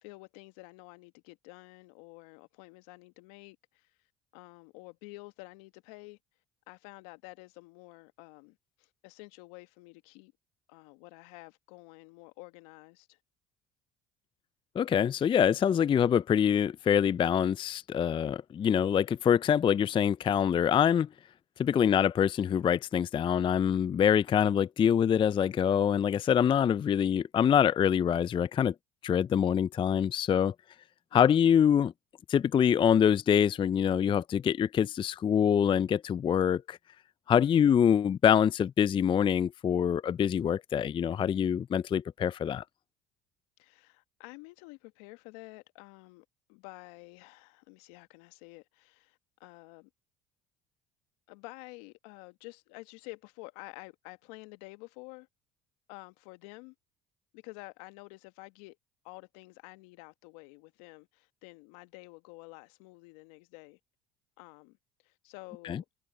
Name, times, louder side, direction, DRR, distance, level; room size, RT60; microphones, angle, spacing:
voice 1, 0.0-3.9 4.3-6.2 6.7-10.3 10.7-13.2 21.8-22.1 31.1-31.5 37.5-37.8 43.6-49.9 51.3-55.3 55.9-56.7 57.3-58.8 59.0-63.8 64.4-64.8 65.0-65.8, left 24 dB, 75° left, 1.6 m, -50 dB
voice 2, 14.8-21.1 21.6-28.7 29.0-30.5 31.1-31.9 32.3-36.8 37.3-42.6 65.7-65.8, left 8 dB, 25° left, 0.4 m, -25 dB
hypercardioid pair, 70°, 19 cm